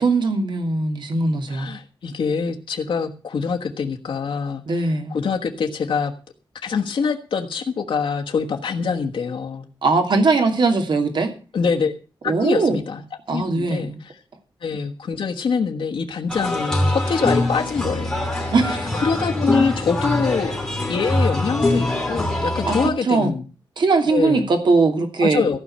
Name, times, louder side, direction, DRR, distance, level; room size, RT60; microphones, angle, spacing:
voice 1, 0.0-1.7 4.7-5.1 9.8-11.3 12.3-12.8 13.3-14.0 18.5-19.0 22.7-22.8 23.0-23.3 23.8-25.6, right 3 dB, 65° right, 5 dB, 2.8 m, -20 dB
voice 2, 1.5-6.1 6.6-9.7 11.5-11.9 12.4-13.0 13.3-14.1 14.6-18.3 18.6-20.5 20.9-23.5 24.1-24.5 25.2-25.6, left 5 dB, 85° left, 3 dB, 1.4 m, -24 dB
sound 1, 16.3-22.9, left 1 dB, 5° left, 4.2 m, -23 dB
15.5 x 5.6 x 8.7 m, 0.35 s
wide cardioid pair, 150°, 8 cm